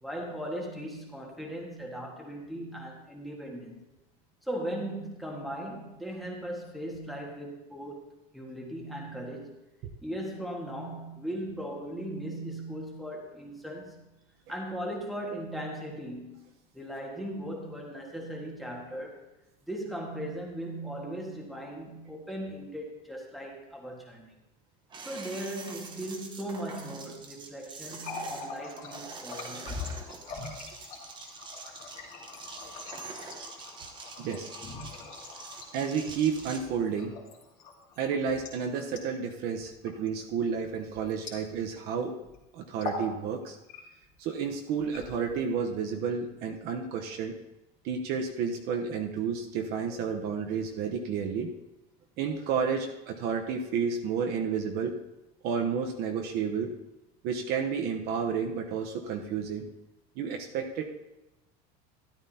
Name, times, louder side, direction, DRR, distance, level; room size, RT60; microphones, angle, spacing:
voice 1, 0.0-3.8 4.4-8.0 8.3-9.5 10.0-14.0 14.5-19.2 19.6-24.3 25.0-29.7, right 1 dB, ahead, -1 dB, 1.6 m, -38 dB
sound 1, 24.9-36.6, right 4 dB, 25° right, 1.1 m, -45 dB
Water tap faucet, 27.8-41.9 42.1-42.4 42.7-43.1 43.5-44.1 44.8-45.5, left 4 dB, 40° left, 2.6 m, -43 dB
voice 2, 34.2-34.5 35.7-37.1 38.0-42.2 42.5-43.6 44.2-47.3 47.8-51.5 52.2-54.9 55.4-56.7 57.2-59.7 60.2-60.9, right 6 dB, 55° right, 3 dB, 1.0 m, -31 dB
13.0 x 12.0 x 2.8 m, 0.97 s
cardioid pair, 165°, 20 cm